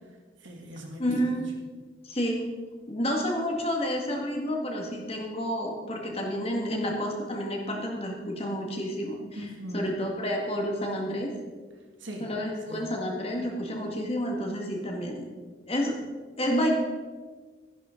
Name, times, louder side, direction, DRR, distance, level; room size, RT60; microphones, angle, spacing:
voice 1, 0.4-1.4 9.4-9.9 12.0-12.3 12.7-13.0, right 1 dB, 80° right, 0 dB, 2.3 m, -40 dB
voice 2, 1.0-1.5 2.1-2.4 2.9-9.2 9.7-11.3 12.2-15.3 15.7-16.0 16.4-16.7, equal, 30° left, 1 dB, 1.9 m, -30 dB
14.0 x 11.0 x 3.8 m, 1.4 s
head